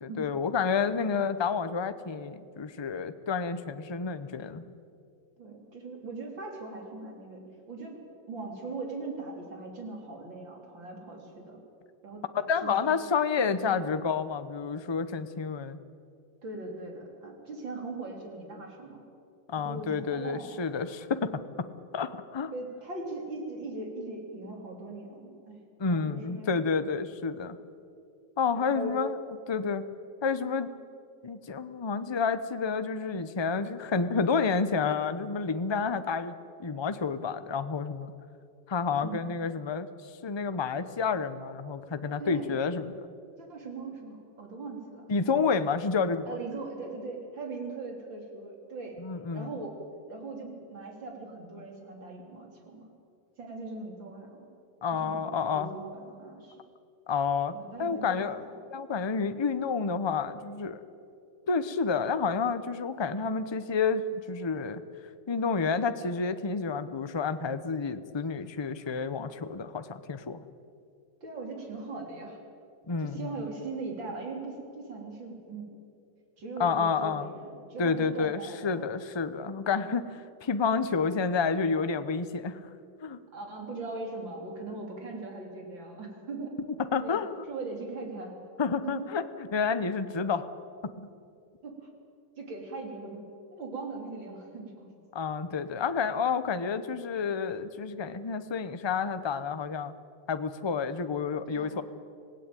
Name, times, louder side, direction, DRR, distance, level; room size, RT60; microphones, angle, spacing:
voice 1, 0.0-4.8 12.5-15.8 19.5-21.4 21.9-22.5 25.8-27.6 28.4-29.2 29.5-29.8 30.2-30.7 31.2-36.3 36.6-38.1 38.7-39.9 40.2-43.0 45.1-46.3 49.0-49.5 54.8-55.7 57.1-57.5 57.8-58.4 58.7-60.8 61.5-64.8 65.3-70.4 72.9-73.3 76.6-77.3 77.8-82.6 83.0-83.2 86.8-87.3 88.6-90.5 91.0-91.1 95.1-99.9 100.3-101.8, left 5 dB, 30° left, 11 dB, 0.4 m, -29 dB
voice 2, 5.4-11.6 12.0-12.2 12.6-13.1 13.4-14.0 16.4-19.0 19.6-20.6 22.5-25.6 25.9-26.5 28.5-29.0 39.0-39.4 42.2-42.5 43.4-45.1 46.3-49.0 49.3-49.8 50.1-52.9 53.4-54.5 54.9-55.2 55.5-56.6 57.5-58.3 71.2-72.4 73.0-75.7 76.4-78.9 83.3-86.5 87.0-87.2 87.5-88.3 88.8-89.1 91.6-91.9 92.4-93.2 93.5-94.9 101.5-101.8, right 3 dB, 90° right, 1 dB, 4.5 m, -40 dB
26.0 x 17.0 x 9.0 m, 2.5 s
omnidirectional pair, 2.0 m